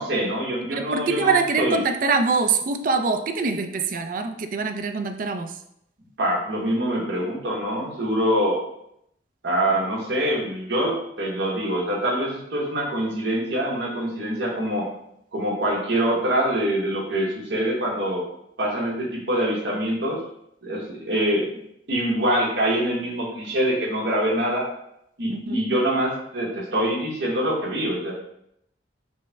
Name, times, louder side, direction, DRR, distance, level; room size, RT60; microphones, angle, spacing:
voice 1, 0.0-1.8 6.2-8.6 9.4-14.9 15.3-18.2 18.6-20.2 20.6-21.6 21.9-24.7 25.2-28.1, right 1 dB, 75° right, -2 dB, 1.1 m, -24 dB
voice 2, 0.7-5.6 25.3-25.6, right 4 dB, 50° right, 7 dB, 0.3 m, -24 dB
5.3 x 2.1 x 3.4 m, 0.76 s
head